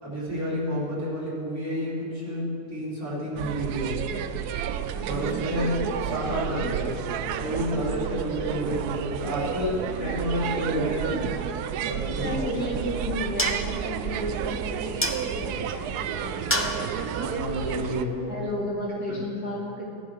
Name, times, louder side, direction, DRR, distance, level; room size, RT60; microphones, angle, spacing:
voice 1, 0.0-4.0 5.1-6.9 7.3-11.2 11.8-12.4 17.1-18.3 19.1-19.2 19.4-19.5, equal, 65° right, -8 dB, 4.0 m, -30 dB
sound 1, 3.4-18.0, right 8 dB, 85° right, 1.1 m, -31 dB
voice 2, 4.9-5.4 12.2-17.1 17.8-17.9 18.3-20.0, left 1 dB, 75° left, -4 dB, 2.9 m, -34 dB
sound 2, 12.2-18.6, left 1 dB, 20° left, 0.4 m, -34 dB
14.5 x 10.5 x 4.9 m, 2.8 s
omnidirectional pair, 1.6 m